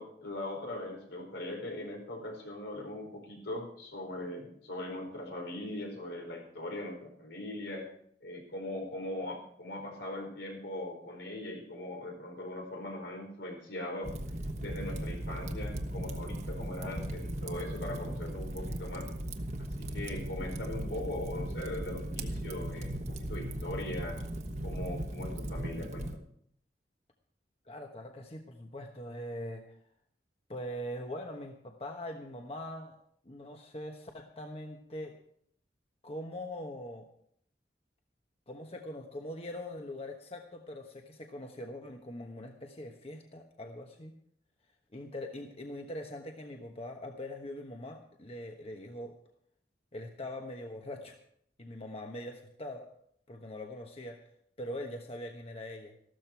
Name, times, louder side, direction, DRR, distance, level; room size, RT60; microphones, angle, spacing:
voice 1, 0.0-7.9 8.2-14.1 14.6-19.1 19.8-24.2 24.6-26.2, left 1 dB, 80° left, 1 dB, 4.9 m, -40 dB
Fire, 14.0-26.2, right 1 dB, 40° right, 1.2 m, -37 dB
voice 2, 27.6-29.8 30.5-32.9 33.2-35.2 36.0-37.1 38.5-44.1 44.9-49.2 49.9-51.2 51.6-52.9 53.3-54.2 54.6-55.9, left 1 dB, 35° left, 3 dB, 1.2 m, -42 dB
14.0 x 13.0 x 4.6 m, 0.67 s
head